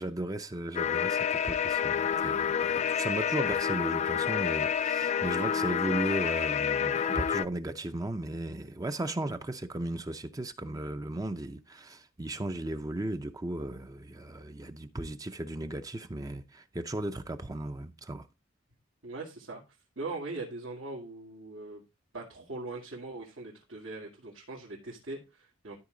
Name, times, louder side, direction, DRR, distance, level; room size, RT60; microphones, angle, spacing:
voice 1, 0.0-18.3, right 1 dB, 20° right, 0.5 m, -36 dB
sound 1, 0.8-7.5, left 8 dB, 35° left, 0.3 m, -29 dB
voice 2, 19.0-19.6 20.0-21.8 22.1-25.7, right 2 dB, 85° right, 2.2 m, -41 dB
12.5 x 4.6 x 3.8 m
head